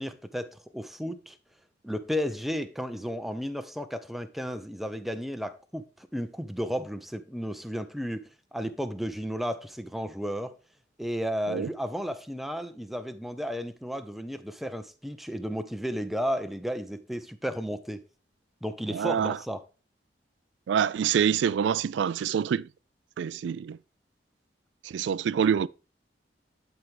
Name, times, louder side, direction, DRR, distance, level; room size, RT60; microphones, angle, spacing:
voice 1, 0.0-1.4 1.8-10.5 11.0-18.0 18.6-19.6, equal, ahead, 0.5 m, -33 dB
voice 2, 18.9-19.4 20.7-22.7 23.2-23.8 24.8-25.7, right 8 dB, 85° right, 0.3 m, -26 dB
11.5 x 4.5 x 3.3 m
head